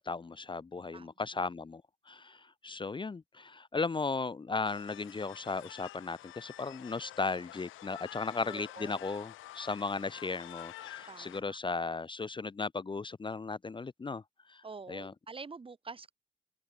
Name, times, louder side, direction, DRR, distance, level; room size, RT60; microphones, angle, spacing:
voice 1, 0.0-14.2 14.5-15.1, left 4 dB, 25° left, 0.9 m, -36 dB
sound 1, 4.6-11.4, left 15 dB, 85° left, 1.2 m, -49 dB
voice 2, 8.4-9.0 11.1-11.6 14.6-16.1, right 4 dB, 25° right, 1.4 m, -47 dB
open air
cardioid pair, 90°, 20 cm